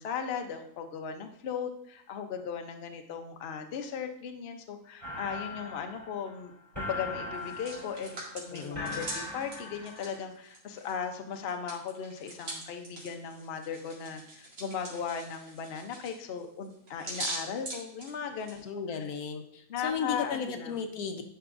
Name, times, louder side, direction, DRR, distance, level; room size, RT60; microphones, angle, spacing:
voice 1, 0.0-18.7 19.7-20.8, left 7 dB, 50° left, 5 dB, 0.8 m, -37 dB
sound 1, 5.0-10.2, left 2 dB, 20° right, 3.3 m, -40 dB
Hands, 7.3-11.0 11.3-18.6, right 2 dB, 80° right, 2.5 m, -42 dB
voice 2, 8.5-9.1 18.6-21.2, left 6 dB, 70° left, 6 dB, 1.1 m, -35 dB
11.5 x 4.7 x 2.5 m, 0.69 s
omnidirectional pair, 1.7 m